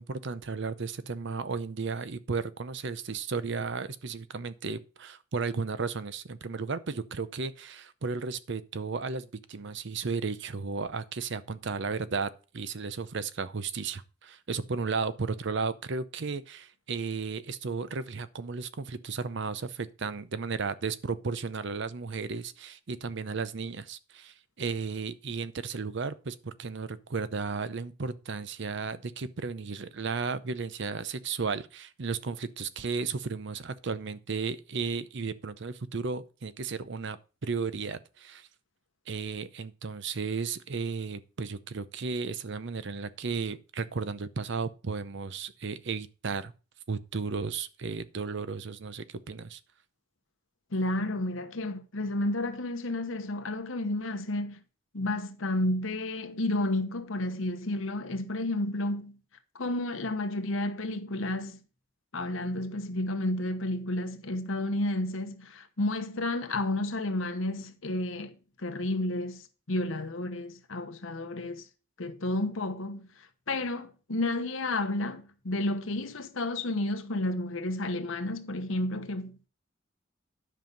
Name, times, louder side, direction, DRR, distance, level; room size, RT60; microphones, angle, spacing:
voice 1, 0.0-38.5 39.1-46.5 46.9-49.6, right 4 dB, 60° right, 0.7 m, -34 dB
voice 2, 50.7-54.6 54.9-59.2 59.5-61.6 62.1-69.4 69.7-71.6 72.0-73.1 73.5-79.5, left 1 dB, 80° left, 1.1 m, -31 dB
10.5 x 5.6 x 5.3 m
head